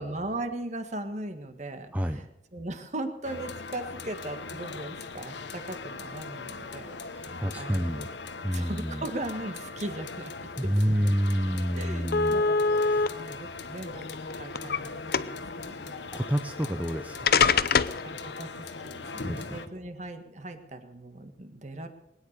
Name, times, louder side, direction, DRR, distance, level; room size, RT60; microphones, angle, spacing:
voice 1, 0.0-2.3 2.5-8.1 8.5-10.3 10.6-10.7 11.7-12.7 13.2-14.1 14.4-16.0 18.0-21.9, right 1 dB, 40° right, 8 dB, 1.7 m, -38 dB
sound 1, 3.2-19.7, left 4 dB, 80° left, 1.1 m, -40 dB
voice 2, 7.1-8.1 8.4-9.1 10.6-12.4 12.8-13.1 15.7-15.8 16.1-17.3 19.2-19.6, equal, 10° right, 6 dB, 0.7 m, -29 dB
sound 2, 11.0-11.1 11.4-11.6 12.1-13.1 13.9-14.8 15.1-15.5 16.6-16.7 17.3-18.0, left 5 dB, 55° left, 0.6 m, -23 dB
21.5 x 10.0 x 6.7 m, 0.84 s
head